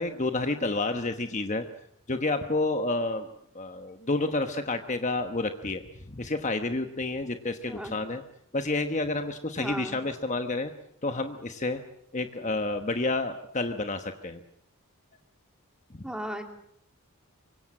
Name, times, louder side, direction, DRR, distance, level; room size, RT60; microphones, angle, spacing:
voice 1, 0.0-1.6 2.1-3.3 3.5-8.2 8.5-10.7 11.0-11.8 12.1-14.4 15.9-16.1, left 2 dB, 35° left, 7 dB, 1.1 m, -29 dB
voice 2, 9.6-10.0 16.0-16.4, equal, 5° right, 4 dB, 2.7 m, -35 dB
25.0 x 24.5 x 7.6 m, 0.73 s
head